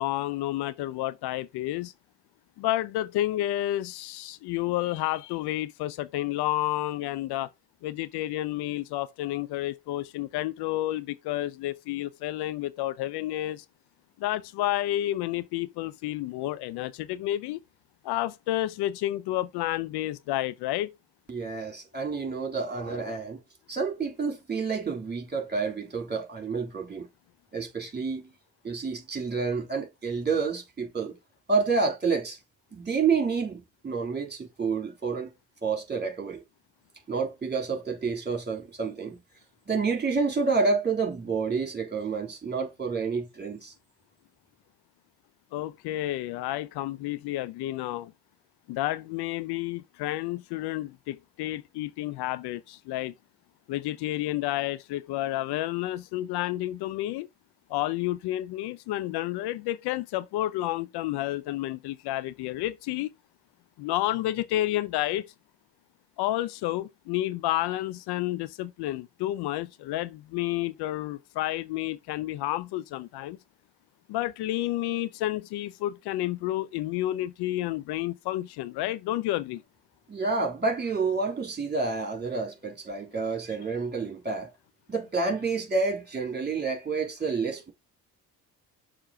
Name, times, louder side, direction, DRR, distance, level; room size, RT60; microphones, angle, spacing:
voice 1, 0.0-1.9 2.6-7.5 7.8-13.7 14.2-17.6 18.0-20.9 45.5-48.1 48.7-53.1 53.7-57.3 57.7-63.1 63.8-65.3 66.2-73.4 74.1-79.6, left 15 dB, 60° left, 0.6 m, -30 dB
voice 2, 21.3-23.4 23.7-27.1 27.5-28.3 28.6-31.2 31.5-32.4 32.7-35.3 35.6-36.4 37.1-39.2 39.7-43.7 80.1-84.5 84.9-87.7, right 4 dB, 20° right, 3.4 m, -29 dB
6.6 x 3.6 x 5.8 m
hypercardioid pair, 55°, 46 cm